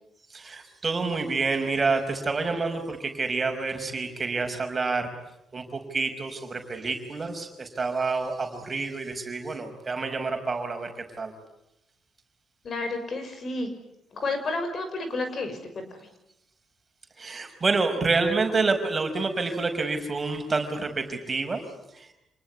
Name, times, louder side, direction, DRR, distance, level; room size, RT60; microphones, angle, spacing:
voice 1, 0.3-5.1 5.5-10.9 11.2-11.3 17.2-21.6 22.0-22.1, right 3 dB, 30° right, 5 dB, 5.5 m, -28 dB
voice 2, 12.6-13.7 14.1-16.1, left 2 dB, 50° left, 7 dB, 6.3 m, -31 dB
28.0 x 20.0 x 9.8 m, 0.86 s
cardioid pair, 90°, 0 cm